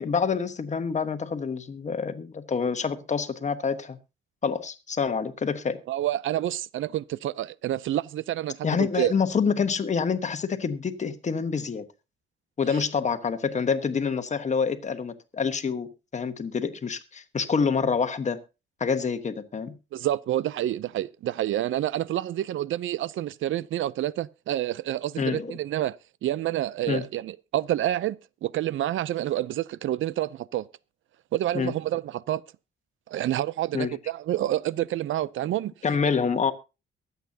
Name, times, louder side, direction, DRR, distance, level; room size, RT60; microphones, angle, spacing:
voice 1, 0.0-4.0 4.4-5.8 8.6-11.9 12.6-18.4 18.8-19.8 25.2-25.6 26.9-27.0 31.5-31.7 33.7-33.9 35.8-36.5, left 5 dB, 35° left, 1.2 m, -27 dB
voice 2, 5.9-9.1 19.9-26.0 26.2-30.7 31.3-32.4 33.1-35.7 36.0-36.1, right 13 dB, 70° right, 0.5 m, -28 dB
23.0 x 8.2 x 2.8 m
cardioid pair, 115°, 21 cm